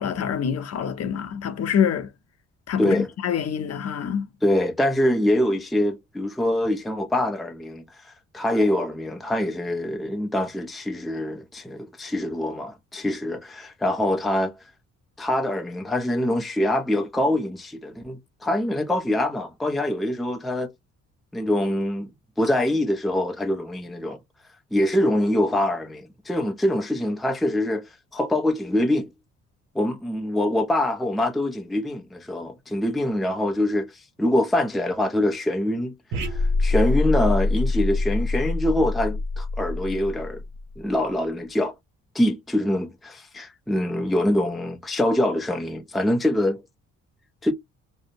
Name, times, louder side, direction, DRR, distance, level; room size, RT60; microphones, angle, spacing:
voice 1, 0.0-2.1 2.7-4.3, left 8 dB, 55° left, 0.6 m, -26 dB
voice 2, 2.8-3.1 4.4-7.8 8.3-14.5 15.2-20.7 21.3-22.1 22.4-24.2 24.7-27.8 28.1-29.1 29.7-33.9 34.2-40.4 40.8-41.8 42.1-46.6 47.4-47.5, left 1 dB, ahead, 0.4 m, -24 dB
sound 1, 36.1-40.7, left 3 dB, 85° right, 0.8 m, -25 dB
2.6 x 2.0 x 2.6 m
cardioid pair, 90°, 30 cm